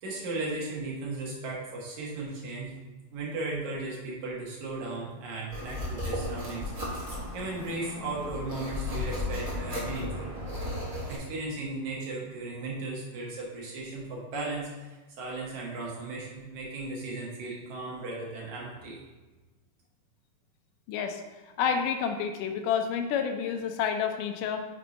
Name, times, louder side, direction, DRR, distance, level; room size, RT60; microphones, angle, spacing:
voice 1, 0.0-2.7 3.1-10.3 11.1-19.0, right 2 dB, 70° right, -4 dB, 2.4 m, -36 dB
sound 1, 5.5-11.2, left 1 dB, 40° right, 1.2 m, -35 dB
voice 2, 20.9-21.2 21.6-24.6, left 7 dB, 85° left, 6 dB, 2.1 m, -29 dB
6.0 x 4.6 x 3.9 m, 1.2 s
omnidirectional pair, 3.7 m